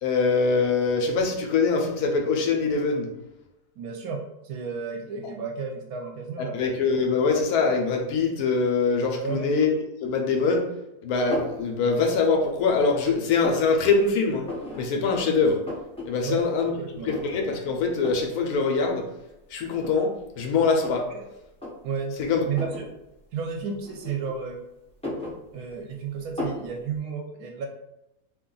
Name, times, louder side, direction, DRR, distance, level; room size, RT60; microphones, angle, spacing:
voice 1, 0.0-3.1 6.5-9.7 10.0-10.6 11.0-14.5 14.8-15.6 16.0-16.7 17.0-19.0 19.5-21.1 22.2-22.4, left 4 dB, 80° left, 2 dB, 1.1 m, -23 dB
voice 2, 3.8-6.6 9.2-9.6 16.2-17.1 21.1-21.3 21.8-22.2 22.5-22.9 23.3-24.6 25.5-27.7, right 5 dB, 75° right, 2 dB, 1.0 m, -32 dB
sound 1, 11.3-11.6 12.2-12.8 13.1-13.7 14.4-14.8 15.1-15.2 15.4-16.1 16.4-16.5 17.0-17.5 18.0-18.3 19.1-19.2 19.8-21.1 21.5-21.7 22.5-22.9 23.8-24.5 24.8-25.9 26.4-26.7, left 2 dB, 10° left, 0.3 m, -34 dB
2.8 x 2.4 x 3.8 m, 0.91 s
omnidirectional pair, 1.6 m